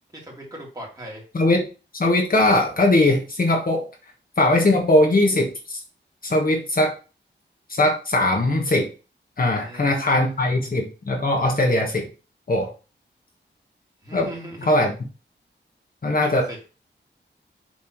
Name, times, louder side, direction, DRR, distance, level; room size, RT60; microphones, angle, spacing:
voice 1, 0.1-1.2 9.4-10.6 14.0-14.9 16.2-16.6, equal, 20° right, -3 dB, 2.7 m, -39 dB
voice 2, 1.3-1.7 1.9-3.9 4.4-5.8 6.2-6.9 7.7-8.9 9.4-12.1 12.5-12.7 14.1-14.3 14.7-14.9 16.0-16.5, left 1 dB, 50° left, 1 dB, 1.4 m, -20 dB
7.4 x 3.6 x 4.6 m, 0.33 s
wide cardioid pair, 125°, 19 cm